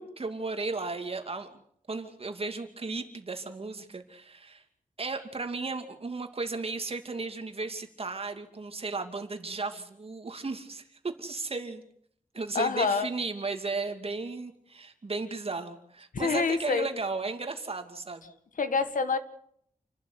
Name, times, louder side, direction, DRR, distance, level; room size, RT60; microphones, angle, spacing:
voice 1, 0.0-1.6 1.9-4.6 5.0-11.8 12.3-18.3, right 3 dB, 45° right, 6 dB, 2.6 m, -35 dB
voice 2, 12.5-13.1 16.1-16.9 18.6-19.2, left 4 dB, 75° left, 10 dB, 1.9 m, -26 dB
29.0 x 12.0 x 8.3 m, 0.68 s
wide cardioid pair, 120°, 14 cm